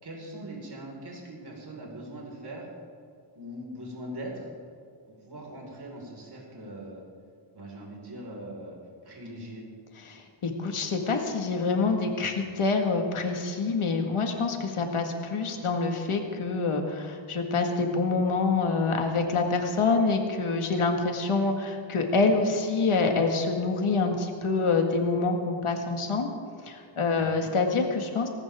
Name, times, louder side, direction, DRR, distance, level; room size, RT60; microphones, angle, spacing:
voice 1, 0.0-2.7 3.4-4.5 5.2-7.1 7.5-8.8 9.0-9.6 27.1-27.5, right 1 dB, 50° right, -2 dB, 5.2 m, -41 dB
voice 2, 10.1-26.3 26.6-28.3, left 4 dB, 80° left, 3 dB, 2.1 m, -26 dB
20.0 x 18.5 x 3.7 m, 2.2 s
wide cardioid pair, 115°, 50 cm